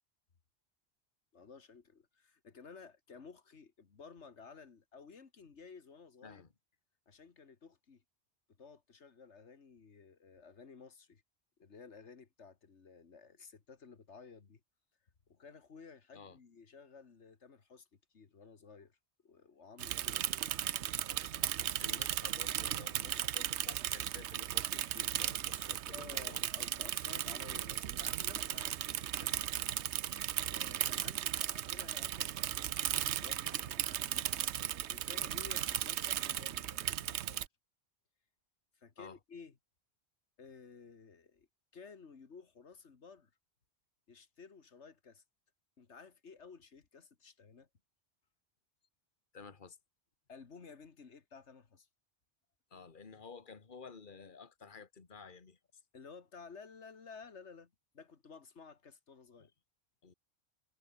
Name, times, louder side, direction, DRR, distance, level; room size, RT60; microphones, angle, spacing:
voice 1, 1.3-6.4 7.1-8.0 8.6-11.2 11.6-14.6 15.3-19.0 19.2-21.7 25.9-29.5 30.5-34.5 34.9-37.5 38.8-39.6 40.4-41.5 41.7-43.3 44.1-45.2 45.8-47.7 50.3-51.9 55.9-59.5, left 5 dB, 90° left, 2.1 m, -54 dB
Bicycle / Mechanisms, 19.8-37.5, right 11 dB, 85° right, 1.0 m, -36 dB
voice 2, 21.8-26.5 39.0-39.2 49.3-49.8 52.7-55.6 59.4-59.5 60.0-60.1, left 5 dB, 45° left, 1.8 m, -52 dB
omnidirectional pair, 1.1 m